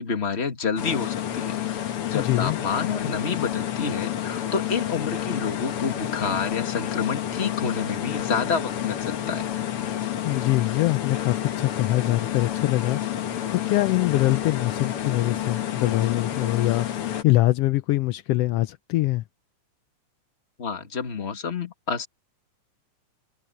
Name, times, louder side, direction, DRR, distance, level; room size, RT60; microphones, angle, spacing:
voice 1, 0.0-9.4 20.6-22.1, left 5 dB, 25° left, 1.8 m, -29 dB
sound 1, 0.8-17.2, left 11 dB, 55° left, 2.0 m, -29 dB
voice 2, 2.1-2.6 10.2-13.0 13.5-19.2, left 17 dB, 90° left, 1.4 m, -23 dB
omnidirectional pair, 3.4 m